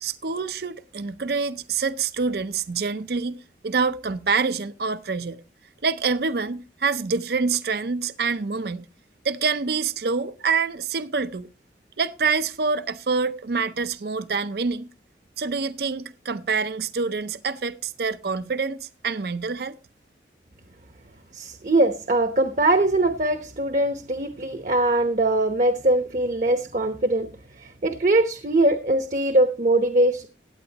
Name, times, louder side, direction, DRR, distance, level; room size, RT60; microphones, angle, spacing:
voice 1, 0.0-3.4 3.6-5.4 5.8-8.8 9.2-11.5 12.0-14.9 15.4-19.7, right 4 dB, 60° right, 0.5 m, -26 dB
voice 2, 21.3-27.3 27.6-30.3, right 2 dB, 45° right, 0.9 m, -22 dB
16.5 x 9.4 x 2.9 m
head